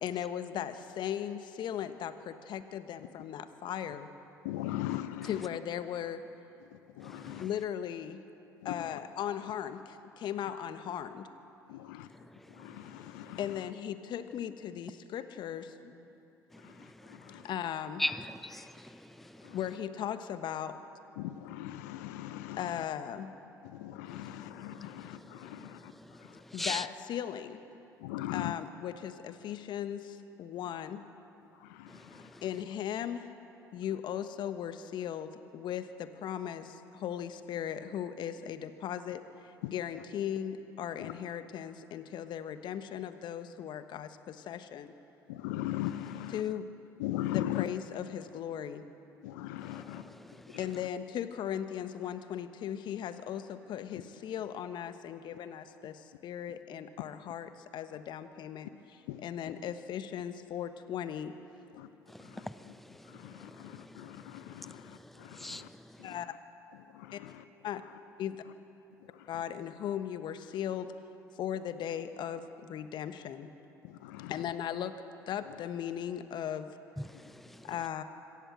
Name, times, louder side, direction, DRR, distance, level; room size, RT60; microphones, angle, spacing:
voice 1, 0.0-4.1 5.3-6.2 7.4-8.2 8.6-11.3 13.4-16.1 17.3-18.0 19.5-20.8 22.6-23.3 26.5-27.6 28.3-31.0 32.4-33.3 33.7-44.9 46.3-46.6 47.3-48.8 50.6-58.7 59.2-61.3 66.0-66.3 67.1-67.2 67.6-67.8 68.2-68.4 69.3-70.9 71.4-73.5 74.3-74.9 75.3-76.8 77.6-78.0, left 9 dB, 55° left, 1.3 m, -37 dB
voice 2, 4.4-5.5 6.6-7.4 8.6-9.0 11.7-12.1 12.5-13.7 16.5-17.6 19.4-19.6 21.2-22.9 23.6-26.7 28.0-28.5 31.5-32.5 39.6-39.7 41.0-41.1 45.3-46.4 47.0-47.7 49.2-50.9 53.9-54.0 56.5-56.6 57.9-58.0 59.1-59.2 61.7-61.9 62.2-65.7 66.0-66.4 66.7-67.4 67.7-68.0 69.0-69.4 73.8-74.4 75.5-75.6, left 14 dB, 75° left, 0.7 m, -40 dB
voice 3, 18.0-19.0 26.6-26.8 31.9-32.0 62.3-62.6 63.4-63.6 65.3-65.6 77.0-77.6, left 1 dB, ahead, 0.6 m, -37 dB
25.5 x 14.5 x 7.7 m
hypercardioid pair, 60°, 9 cm